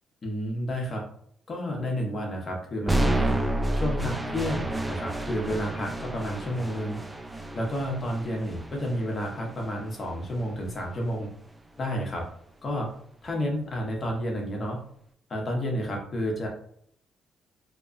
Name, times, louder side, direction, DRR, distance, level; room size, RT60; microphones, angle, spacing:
voice 1, 0.2-1.0 1.5-3.4 3.7-7.0 7.5-11.3 11.8-12.3 12.6-12.9 13.2-14.8 15.3-16.5, equal, 40° left, 0 dB, 0.8 m, -30 dB
sound 1, 2.9-10.9, right 1 dB, 15° right, 0.3 m, -30 dB
2.8 x 2.3 x 2.5 m, 0.65 s
cardioid pair, 90°, 0 cm